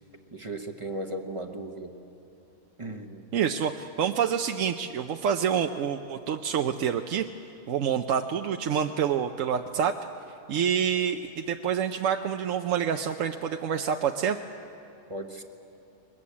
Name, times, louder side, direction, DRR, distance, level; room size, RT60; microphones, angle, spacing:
voice 1, 0.3-1.9 2.8-3.3 15.1-15.4, right 1 dB, 20° right, 5 dB, 1.0 m, -36 dB
voice 2, 3.3-7.3 7.7-9.9 10.5-14.4, right 8 dB, 60° right, 5 dB, 0.9 m, -27 dB
21.5 x 21.5 x 8.5 m, 2.9 s
omnidirectional pair, 1.7 m